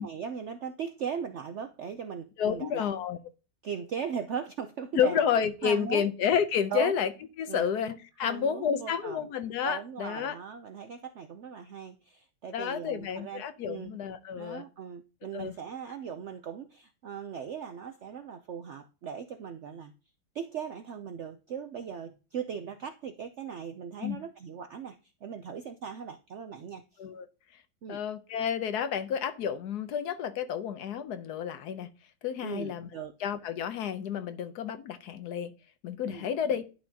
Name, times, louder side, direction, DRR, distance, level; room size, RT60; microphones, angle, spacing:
voice 1, 0.0-2.9 3.6-5.2 5.6-6.1 6.7-7.0 7.5-7.7 8.2-9.3 9.6-14.0 14.3-19.9 20.3-27.0 27.8-28.0 32.4-33.1 36.1-36.3, right 7 dB, 70° right, 8 dB, 0.6 m, -38 dB
voice 2, 2.4-3.2 4.9-7.1 7.4-10.4 12.5-14.6 15.3-15.5 24.0-24.2 27.0-27.3 27.9-31.9 32.2-32.9 33.2-35.5 35.8-36.6, left 8 dB, 70° left, 11 dB, 1.2 m, -30 dB
10.5 x 6.0 x 2.8 m, 0.33 s
omnidirectional pair, 1.9 m